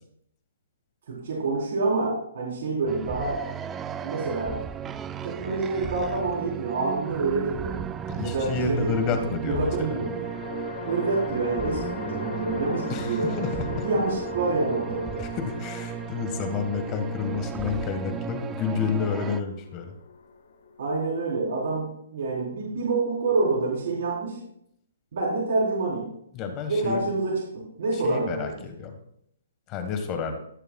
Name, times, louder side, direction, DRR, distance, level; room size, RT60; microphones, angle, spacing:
voice 1, 1.1-3.4 4.0-4.6 5.2-7.8 8.2-10.2 10.9-15.2 20.8-24.4 25.1-26.1 26.7-28.6, right 3 dB, 60° right, -6 dB, 3.8 m, -27 dB
sound 1, 2.9-19.4, right 8 dB, 15° right, 0.3 m, -35 dB
sound 2, 6.6-7.5 9.7-21.1, left 5 dB, 85° left, 1.8 m, -40 dB
voice 2, 8.1-10.0 12.9-13.8 15.2-19.9 26.3-27.1 27.9-29.0 29.7-30.3, left 5 dB, 25° left, 6 dB, 1.4 m, -30 dB
17.5 x 6.6 x 2.3 m, 0.71 s
hypercardioid pair, 160°, 0 cm